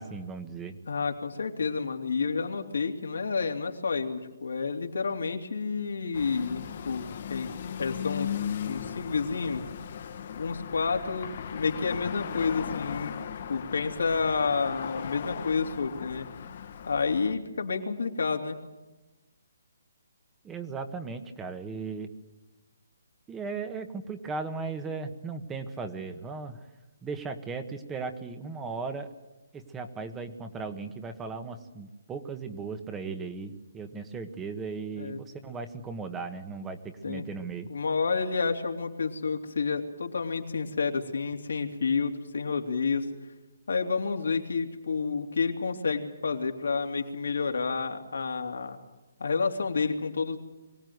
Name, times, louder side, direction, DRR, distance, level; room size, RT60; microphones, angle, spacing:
voice 1, 0.0-0.8 20.4-22.1 23.3-26.6 27.0-29.1 29.5-37.7, right 4 dB, 10° right, 8 dB, 1.4 m, -37 dB
voice 2, 0.9-7.5 7.8-8.3 8.7-9.7 10.4-13.1 13.5-16.3 16.9-18.6 35.0-35.2 37.0-37.2 37.7-43.1 43.7-48.8 49.2-50.4, left 5 dB, 80° left, 4 dB, 3.1 m, -30 dB
sound 1, 6.1-17.4, left 8 dB, 50° left, 1.7 m, -37 dB
23.5 x 17.0 x 9.5 m, 1.1 s
hypercardioid pair, 155°, 0 cm